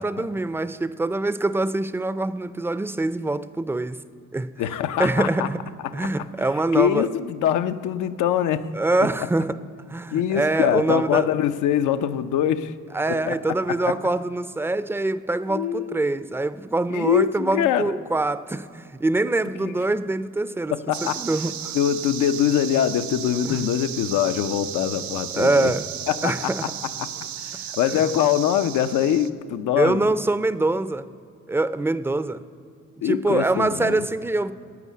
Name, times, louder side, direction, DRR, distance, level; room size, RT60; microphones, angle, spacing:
voice 1, 0.0-4.0 4.3-4.5 5.0-5.6 5.9-7.1 8.7-9.6 9.9-11.3 12.9-20.8 21.0-21.7 23.4-23.7 25.3-25.9 26.2-26.7 29.8-31.1 31.5-32.4 33.0-34.5, right 2 dB, 10° right, 0.4 m, -24 dB
voice 2, 4.6-5.5 5.8-6.1 6.7-8.7 10.1-12.7 13.1-13.4 13.8-13.9 15.5-16.0 16.9-17.9 19.6-19.7 20.7-21.2 21.7-25.7 26.1-26.5 27.0-27.1 27.4-30.1 33.0-34.1, left 10 dB, 85° left, 0.7 m, -23 dB
sound 1, 20.9-29.3, right 9 dB, 70° right, 0.8 m, -34 dB
11.0 x 9.2 x 8.3 m
cardioid pair, 90°, 30 cm